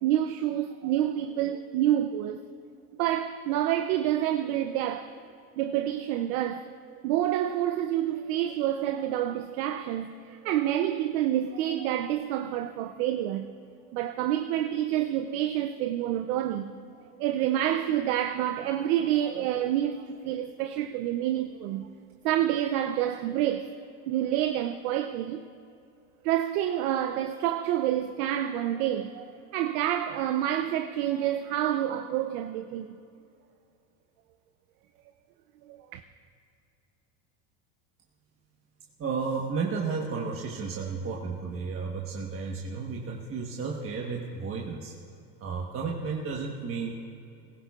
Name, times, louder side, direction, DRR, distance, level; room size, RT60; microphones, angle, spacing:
voice 1, 0.0-2.4 3.0-5.1 5.6-13.5 13.9-16.7 17.2-21.9 22.2-23.8 24.0-25.4 26.2-33.0 35.7-36.0, right 12 dB, 80° right, 0.7 m, -28 dB
voice 2, 39.0-44.9 45.4-47.0, right 5 dB, 30° right, 1.2 m, -33 dB
19.0 x 16.5 x 2.4 m
supercardioid pair, 120°, 44 cm